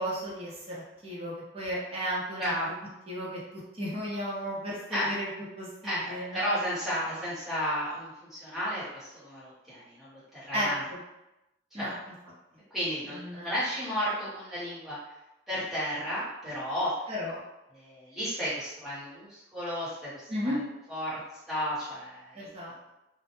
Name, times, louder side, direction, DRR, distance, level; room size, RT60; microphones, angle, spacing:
voice 1, 0.0-2.7 3.1-5.3 5.6-6.4 10.5-11.0 11.7-11.9 13.1-13.5 17.1-17.4 20.3-20.6 22.3-22.9, equal, 30° right, -6 dB, 0.7 m, -34 dB
voice 2, 2.4-2.7 4.9-5.1 5.8-10.8 11.8-12.0 12.7-15.0 15.5-17.1 17.7-20.6 20.9-21.2 21.5-22.5, equal, ahead, -12 dB, 0.9 m, -33 dB
2.1 x 2.1 x 2.9 m, 0.94 s
head